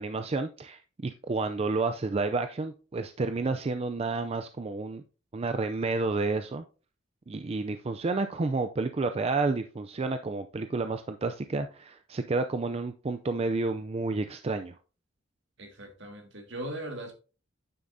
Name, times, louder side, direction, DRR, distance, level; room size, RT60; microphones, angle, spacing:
voice 1, 0.0-5.0 5.3-6.6 7.3-14.7, right 3 dB, 30° right, 0.4 m, -30 dB
voice 2, 15.6-17.1, right 1 dB, 65° right, 2.0 m, -39 dB
9.4 x 7.5 x 2.7 m
head